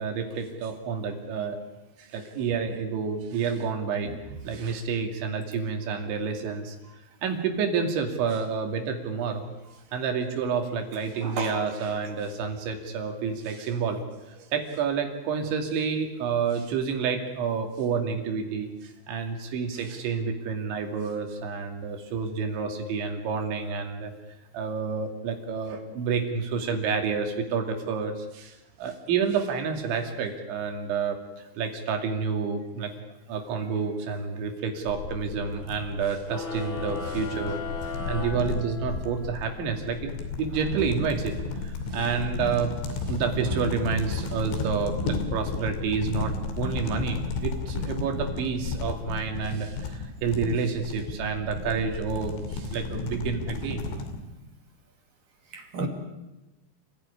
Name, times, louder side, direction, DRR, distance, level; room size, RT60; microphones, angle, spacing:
voice 1, 0.0-1.6 2.0-4.1 4.4-6.8 7.2-9.5 9.9-14.0 14.4-24.1 24.5-32.9 33.3-40.1 40.4-41.3 41.6-42.7 43.0-53.9, right 6 dB, 70° right, 4.8 m, -29 dB
voice 2, 11.2-11.6 55.5-55.9, right 3 dB, 50° right, 3.8 m, -31 dB
sound 1, 34.9-54.2, left 4 dB, 85° left, 5.3 m, -33 dB
sound 2, 36.3-39.2, left 4 dB, 50° left, 4.1 m, -36 dB
28.5 x 16.0 x 10.0 m
omnidirectional pair, 5.5 m